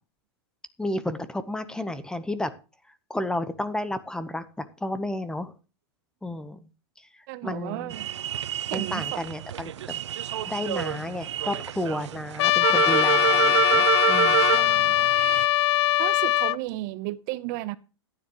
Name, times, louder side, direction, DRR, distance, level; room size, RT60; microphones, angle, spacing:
voice 1, 0.8-2.5 3.1-5.5 6.2-6.7 7.1-7.9 8.7-10.0 10.5-14.5, left 1 dB, 5° left, 0.9 m, -32 dB
voice 2, 7.3-8.1 8.7-9.2 14.4-15.1 16.0-17.8, right 17 dB, 45° right, 0.7 m, -34 dB
sound 1, 7.9-15.5, right 11 dB, 85° right, 0.6 m, -27 dB
Trumpet, 12.4-16.6, left 15 dB, 70° left, 0.4 m, -21 dB
14.5 x 9.8 x 3.0 m
hypercardioid pair, 135°, 15 cm